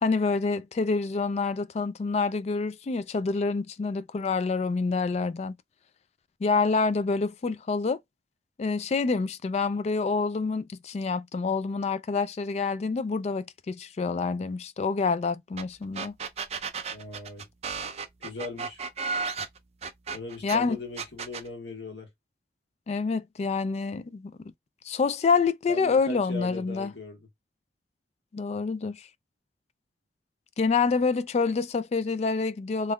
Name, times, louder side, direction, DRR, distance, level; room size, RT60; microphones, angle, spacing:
voice 1, 0.0-5.5 6.4-8.0 8.6-16.1 20.4-20.8 22.9-24.3 24.8-26.9 28.3-29.1 30.6-32.9, left 4 dB, 35° left, 0.3 m, -27 dB
sound 1, 15.6-15.7 15.9-20.6 21.0-21.5, right 5 dB, 35° right, 0.4 m, -33 dB
voice 2, 16.9-17.5 18.2-18.8 20.1-22.1 25.7-27.3, left 3 dB, 90° left, 1.3 m, -39 dB
3.5 x 3.0 x 2.2 m
head